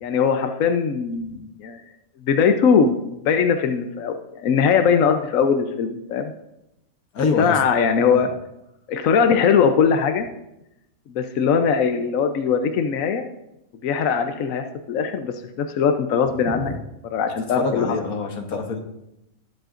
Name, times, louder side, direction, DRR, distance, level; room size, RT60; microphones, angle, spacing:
voice 1, 0.0-1.8 2.2-6.3 7.4-8.3 8.9-10.3 11.1-13.3 13.8-16.7 17.1-17.9, left 6 dB, 70° left, 6 dB, 1.1 m, -20 dB
voice 2, 7.1-7.6 8.1-8.3 16.5-16.8 17.6-18.8, left 4 dB, 85° left, 4 dB, 1.7 m, -25 dB
19.5 x 7.7 x 2.5 m, 0.87 s
omnidirectional pair, 1.5 m